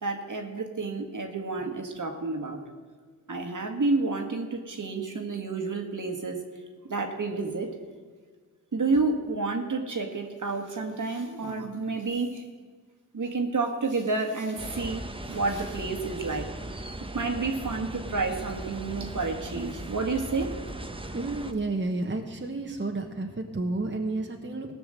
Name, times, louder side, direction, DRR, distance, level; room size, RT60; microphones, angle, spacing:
voice 1, 0.0-2.6 3.3-6.4 6.9-7.7 8.7-12.4 13.1-16.5 17.1-20.5, right 3 dB, 60° right, 3 dB, 1.8 m, -30 dB
sound 1, 14.6-21.5, right 1 dB, 15° right, 1.0 m, -38 dB
voice 2, 21.1-24.7, right 2 dB, 30° right, 2 dB, 1.3 m, -31 dB
17.0 x 6.1 x 7.6 m, 1.5 s
cardioid pair, 50°, 35 cm